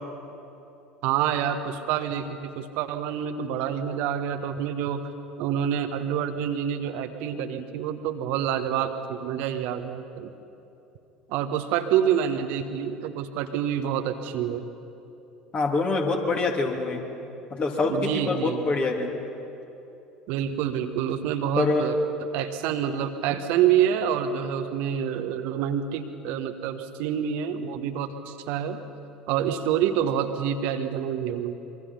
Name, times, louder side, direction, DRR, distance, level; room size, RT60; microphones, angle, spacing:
voice 1, 1.0-5.1 5.4-10.3 11.3-14.7 17.8-18.6 20.3-22.0 22.3-28.8 29.3-31.5, right 9 dB, 55° right, 7 dB, 1.3 m, -27 dB
voice 2, 15.5-17.0 17.5-19.1 21.6-21.8, left 3 dB, 35° left, 2 dB, 3.0 m, -25 dB
25.5 x 23.0 x 5.7 m, 2.9 s
figure-of-eight pair, 65°, 3 cm